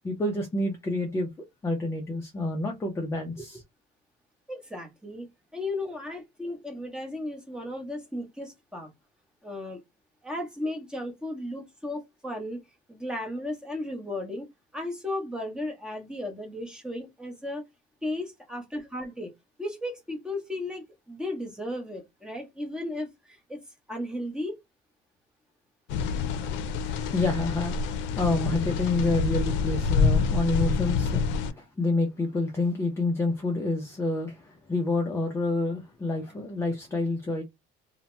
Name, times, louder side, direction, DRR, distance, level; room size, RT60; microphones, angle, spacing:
voice 1, 0.0-1.3 1.6-3.6 26.5-37.4, left 2 dB, 15° left, 0.4 m, -28 dB
voice 2, 4.5-5.3 5.5-8.9 9.4-9.8 10.2-12.6 12.9-14.5 14.7-17.6 18.0-19.3 19.6-23.6 23.9-24.6, left 1 dB, 5° right, 0.8 m, -35 dB
sound 1, 25.9-31.5, left 5 dB, 85° left, 0.5 m, -27 dB
2.7 x 2.1 x 3.0 m
cardioid pair, 160°, 19 cm